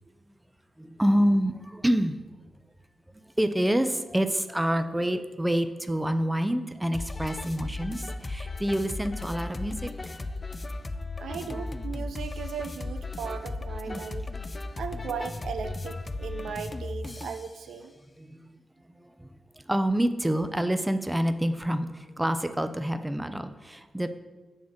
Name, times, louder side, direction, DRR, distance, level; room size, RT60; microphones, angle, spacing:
voice 1, 0.8-2.2 3.1-10.2 13.9-14.0 18.1-18.6 18.9-19.4 19.7-24.2, equal, 10° right, 9 dB, 0.6 m, -27 dB
sound 1, 6.9-17.5, left 2 dB, 35° left, 0.4 m, -36 dB
voice 2, 11.2-14.3 14.8-17.9, right 6 dB, 75° right, 8 dB, 0.5 m, -37 dB
6.4 x 3.5 x 6.0 m, 1.2 s
supercardioid pair, 40°, 0 cm